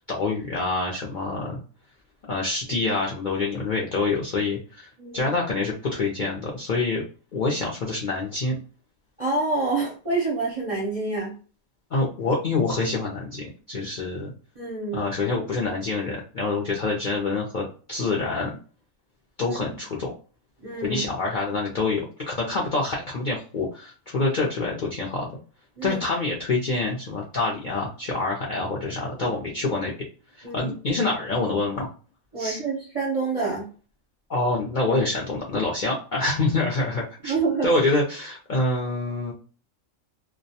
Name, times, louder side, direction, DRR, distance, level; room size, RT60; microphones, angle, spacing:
voice 1, 0.0-1.6 2.3-7.0 7.3-8.6 11.9-14.3 14.9-18.6 19.4-20.1 20.8-25.3 25.8-29.9 30.4-31.9 32.4-32.6 34.3-37.3 37.6-39.3, left 3 dB, 60° left, -3 dB, 0.5 m, -26 dB
voice 2, 5.0-5.3 9.2-11.3 14.6-15.0 19.5-19.6 20.6-21.0 25.8-26.0 30.4-30.7 32.3-33.7 37.2-37.7, right 3 dB, 40° right, -3 dB, 0.5 m, -27 dB
2.2 x 2.1 x 2.7 m, 0.37 s
omnidirectional pair, 1.4 m